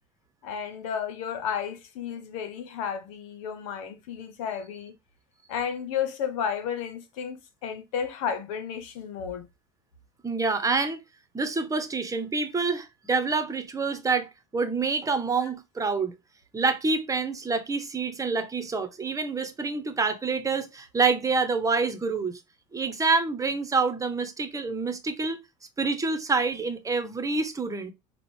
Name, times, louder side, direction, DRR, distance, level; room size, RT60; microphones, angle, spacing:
voice 1, 0.4-4.9 5.5-9.4 15.4-15.5, left 7 dB, 80° left, 1.0 m, -32 dB
voice 2, 10.2-11.0 11.3-16.1 16.5-22.4 22.7-25.4 25.8-27.9, right 4 dB, 20° right, 1.1 m, -27 dB
6.0 x 2.5 x 3.4 m
supercardioid pair, 90°, 17 cm